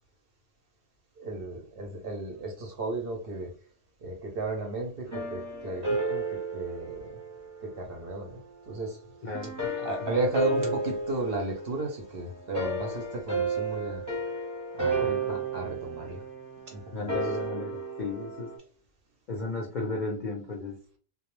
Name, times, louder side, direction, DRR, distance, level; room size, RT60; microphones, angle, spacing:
voice 1, 1.2-3.5 4.0-7.2 7.6-8.4 8.7-9.0 9.8-14.0 14.7-16.2 16.7-17.2, right 2 dB, 55° right, 1 dB, 0.7 m, -34 dB
sound 1, 5.1-8.0 9.3-18.6, right 2 dB, 15° right, 0.7 m, -32 dB
voice 2, 9.2-9.7 10.0-10.2 10.5-10.8 15.0-15.4 16.9-18.5 19.3-20.8, left 2 dB, 60° left, -1 dB, 0.5 m, -35 dB
2.3 x 2.0 x 3.0 m, 0.39 s
omnidirectional pair, 1.4 m